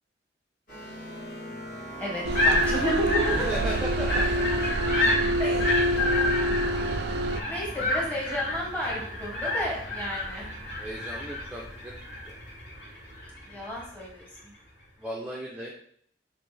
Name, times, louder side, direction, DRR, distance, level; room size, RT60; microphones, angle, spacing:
sound 1, 0.7-10.7, right 2 dB, 45° left, 1.7 m, -43 dB
voice 1, 2.0-3.5 5.4-5.9 7.4-10.5 13.4-14.5, equal, 10° left, -4 dB, 1.3 m, -32 dB
sound 2, 2.2-7.4, right 1 dB, 65° right, 0.3 m, -27 dB
sound 3, 2.3-13.8, left 2 dB, 65° left, 1.8 m, -30 dB
voice 2, 3.3-4.6 10.8-12.0 12.2-12.4 15.0-15.7, equal, 5° right, -4 dB, 0.5 m, -36 dB
5.5 x 2.5 x 3.3 m, 0.63 s
head